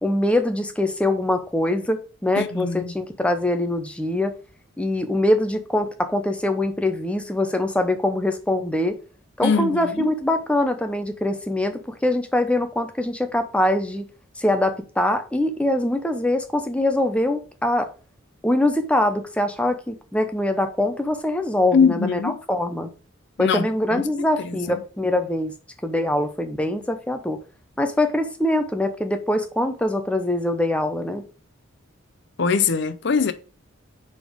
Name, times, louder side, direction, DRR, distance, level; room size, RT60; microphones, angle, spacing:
voice 1, 0.0-4.3 4.8-9.0 9.4-14.0 14.4-17.9 18.4-22.9 23.4-25.5 25.8-27.4 27.8-31.2, left 1 dB, 5° left, 0.7 m, -23 dB
voice 2, 2.4-2.9 9.4-10.1 21.7-22.4 23.4-24.6 32.4-33.3, left 5 dB, 60° left, 0.6 m, -22 dB
4.9 x 4.2 x 5.0 m
head